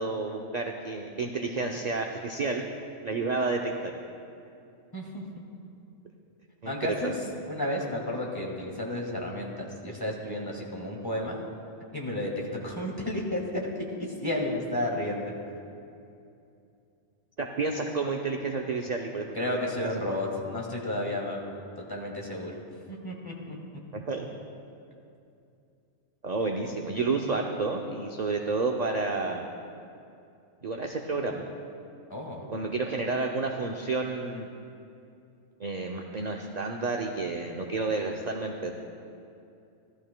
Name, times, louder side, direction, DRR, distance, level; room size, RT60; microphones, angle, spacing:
voice 1, 0.0-2.7 3.0-3.9 6.6-7.1 17.4-19.6 20.1-20.2 23.9-24.3 26.2-29.4 30.6-31.4 32.5-34.5 35.6-38.7, right 3 dB, 50° right, 2 dB, 0.5 m, -30 dB
voice 2, 4.9-5.4 6.6-7.1 7.5-11.4 11.9-13.8 14.2-15.3 19.3-21.4 21.9-22.6 22.9-23.6 32.1-32.4, left 1 dB, 15° left, -2 dB, 1.5 m, -32 dB
17.0 x 12.5 x 2.2 m, 2.6 s
omnidirectional pair, 1.3 m